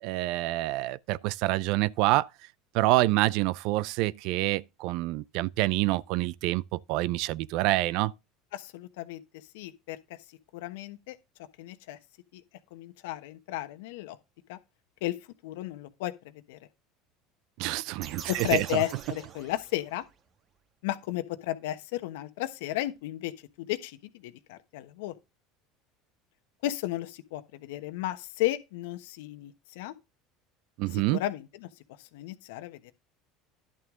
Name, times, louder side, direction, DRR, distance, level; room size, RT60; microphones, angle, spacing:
voice 1, 0.0-2.3 2.7-8.1 17.6-18.8 30.8-31.2, right 18 dB, 65° right, 0.4 m, -27 dB
voice 2, 8.5-9.2 9.5-10.0 10.5-11.2 11.6-12.0 12.3-12.4 12.7-14.2 14.5-14.6 15.0-15.1 15.4-16.1 16.5-16.6 18.3-20.0 20.8-23.3 23.6-24.0 24.2-25.1 26.6-29.9 30.9-31.7 32.1-32.9, left 15 dB, 80° left, 1.0 m, -33 dB
sound 1, 18.0-20.1, right 7 dB, 45° right, 1.4 m, -43 dB
11.0 x 6.4 x 3.7 m
supercardioid pair, 95°, 0 cm